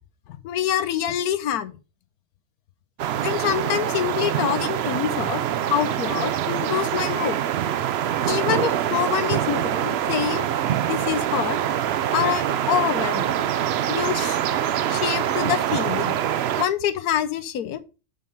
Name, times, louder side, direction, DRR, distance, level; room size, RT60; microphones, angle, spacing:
voice 1, 0.4-1.7 3.2-5.4 5.7-7.4 8.2-10.5 10.9-11.6 12.1-13.3 13.9-14.4 14.9-16.2 16.6-17.8, left 10 dB, 75° left, 1.2 m, -26 dB
sound 1, 3.0-16.7, right 10 dB, 75° right, 0.6 m, -24 dB
5.5 x 5.4 x 5.2 m
omnidirectional pair, 1.7 m